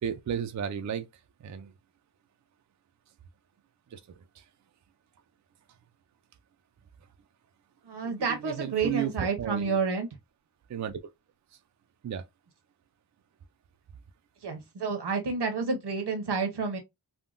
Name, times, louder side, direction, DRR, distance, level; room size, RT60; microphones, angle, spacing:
voice 1, 0.0-1.1 1.4-1.7 3.9-4.4 8.0-9.8 10.7-11.0 12.0-12.2, right 8 dB, 45° right, 0.4 m, -34 dB
voice 2, 7.8-10.1 14.4-16.8, right 4 dB, 75° right, 1.0 m, -30 dB
3.6 x 2.2 x 2.4 m
wide cardioid pair, 95°, 41 cm